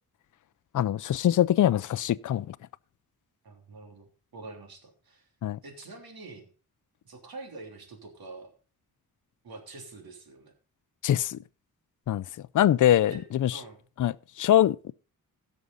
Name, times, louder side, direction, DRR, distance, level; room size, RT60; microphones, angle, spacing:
voice 1, 0.7-2.6 5.4-5.6 11.0-11.4 12.1-12.2 12.5-13.6 14.0-14.9, left 11 dB, 55° left, 0.5 m, -23 dB
voice 2, 3.4-5.3 5.6-6.5 7.0-8.5 9.4-10.5 13.1-13.2 13.5-13.8, right 3 dB, 75° right, 3.3 m, -45 dB
16.5 x 6.4 x 3.9 m
wide cardioid pair, 105°, 37 cm